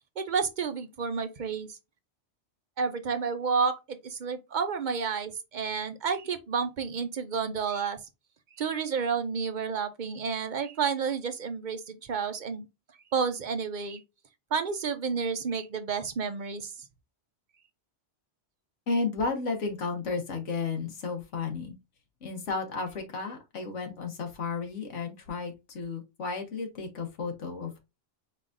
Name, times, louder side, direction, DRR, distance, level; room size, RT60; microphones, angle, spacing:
voice 1, 0.2-1.8 2.8-8.0 8.6-12.7 13.1-14.0 14.5-16.7, right 5 dB, 50° right, 0.6 m, -30 dB
voice 2, 18.9-21.8 22.2-27.8, left 4 dB, 85° left, 1.4 m, -33 dB
4.6 x 3.7 x 2.5 m
omnidirectional pair, 1.2 m